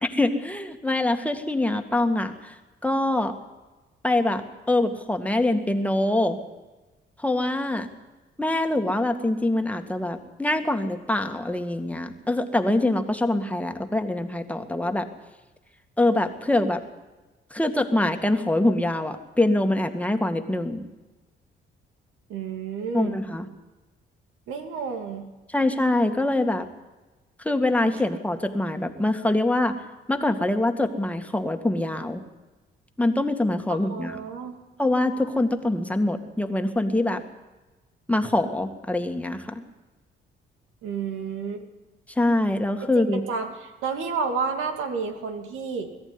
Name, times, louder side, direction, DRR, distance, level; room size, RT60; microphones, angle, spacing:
voice 1, 0.0-2.6 2.8-3.3 4.0-6.4 7.2-7.9 8.4-15.1 16.0-16.8 17.5-20.9 22.9-23.5 25.5-26.7 27.4-29.7 30.1-32.2 33.0-34.2 34.8-37.2 38.1-39.6 42.1-43.2, left 1 dB, 5° left, 5 dB, 2.1 m, -24 dB
voice 2, 22.3-23.2 24.5-25.3 33.7-34.5 40.8-41.6 42.9-45.9, right 5 dB, 90° right, 6 dB, 2.7 m, -30 dB
21.5 x 14.0 x 9.9 m, 1.2 s
cardioid pair, 90°, 20 cm